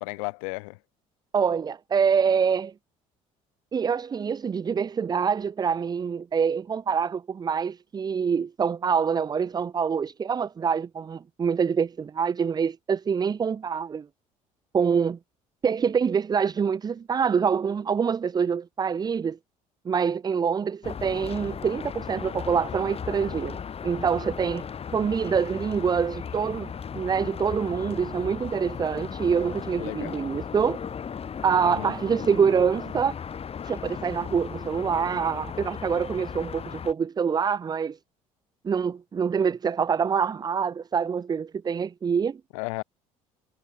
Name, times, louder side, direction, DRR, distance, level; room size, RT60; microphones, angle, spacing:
voice 1, 0.0-0.8 29.7-30.3 31.6-31.9 42.5-42.8, left 28 dB, 70° left, 2.2 m, -34 dB
voice 2, 1.3-2.7 3.7-14.1 14.7-15.2 15.6-19.4 19.9-23.6 23.8-24.6 24.9-30.8 31.4-33.1 33.6-38.0 38.6-42.4, right 6 dB, 25° right, 0.5 m, -25 dB
sound 1, 20.8-36.9, left 7 dB, 35° left, 1.5 m, -36 dB
hypercardioid pair, 60°, 17 cm